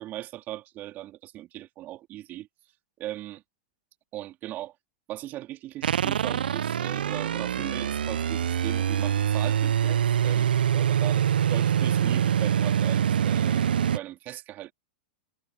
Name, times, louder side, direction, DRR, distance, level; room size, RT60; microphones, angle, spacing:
voice 1, 0.0-2.5 3.0-3.4 4.1-4.7 5.1-14.7, right 14 dB, 40° right, 2.9 m, -39 dB
sound 1, 5.8-14.0, right 9 dB, 85° right, 0.5 m, -24 dB
hypercardioid pair, 115°, 5 cm